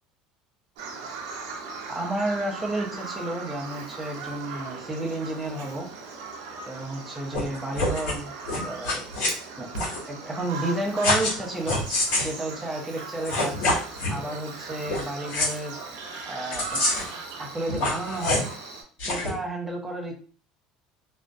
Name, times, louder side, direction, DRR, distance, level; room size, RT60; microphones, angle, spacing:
Bird vocalization bird call bird song, 0.8-18.8, right 4 dB, 85° right, 0.5 m, -39 dB
voice 1, 1.9-5.9 6.7-8.3 8.6-9.1 9.6-9.7 10.1-11.8 12.2-13.7 14.1-15.8 16.3-16.8 17.4-18.5 19.1-20.2, right 1 dB, 10° right, -1 dB, 0.5 m, -31 dB
sound 1, 7.3-7.4 7.7-8.2 8.4-9.3 9.7-10.0 11.0-11.4 11.7-12.3 13.0-13.1 13.2-14.2 14.9-15.0 15.3-15.5 16.5-17.1 17.7-18.5 19.0-19.3, left 2 dB, 65° left, 1.0 m, -26 dB
2.4 x 2.0 x 2.5 m, 0.42 s
cardioid pair, 145°, 2 cm